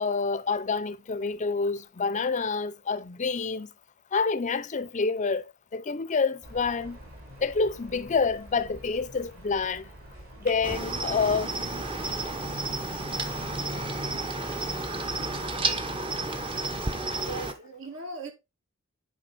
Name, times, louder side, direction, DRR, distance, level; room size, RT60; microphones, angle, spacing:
voice 1, 0.0-3.7 4.1-7.0 7.4-9.9 10.4-11.5, left 4 dB, 35° left, 0.5 m, -28 dB
sound 1, 6.4-14.0, equal, 50° right, 4.7 m, -48 dB
Cricket, 10.6-17.5, right 2 dB, 25° right, 0.9 m, -31 dB
voice 2, 17.2-18.3, right 3 dB, 65° right, 2.3 m, -38 dB
9.8 x 5.0 x 4.1 m
head